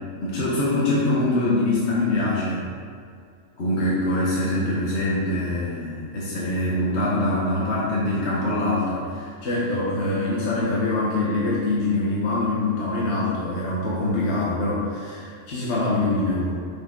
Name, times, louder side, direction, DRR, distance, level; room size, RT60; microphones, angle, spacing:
voice 1, 0.2-2.7 3.6-16.5, left 2 dB, 65° left, -6 dB, 1.5 m, -24 dB
7.0 x 6.7 x 3.9 m, 2.2 s
omnidirectional pair, 1.3 m